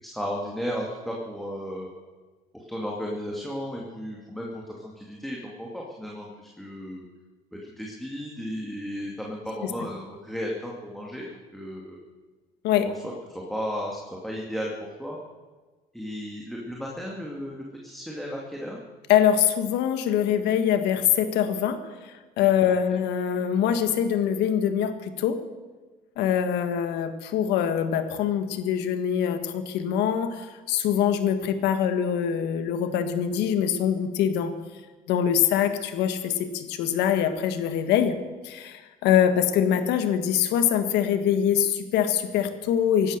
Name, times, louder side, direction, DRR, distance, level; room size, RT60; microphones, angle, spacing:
voice 1, 0.0-1.9 2.5-7.0 7.6-12.0 12.8-14.0 14.2-14.7 15.0-15.2 15.9-18.8 22.6-22.7, equal, ahead, -2 dB, 2.5 m, -34 dB
voice 2, 19.1-25.4 26.2-34.5 35.1-38.2 38.4-43.2, left 9 dB, 90° left, 9 dB, 1.6 m, -24 dB
16.5 x 12.0 x 6.7 m, 1.3 s
cardioid pair, 110°, 17 cm